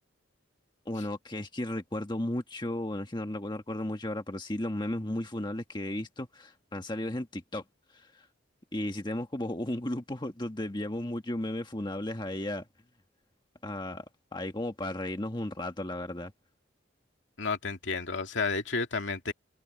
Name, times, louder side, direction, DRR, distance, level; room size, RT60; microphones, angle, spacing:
voice 1, 0.8-7.6 7.9-8.3 8.7-12.6 13.6-14.0 14.3-16.3, left 1 dB, 25° left, 1.5 m, -34 dB
voice 2, 17.4-19.3, left 4 dB, 65° left, 2.4 m, -31 dB
head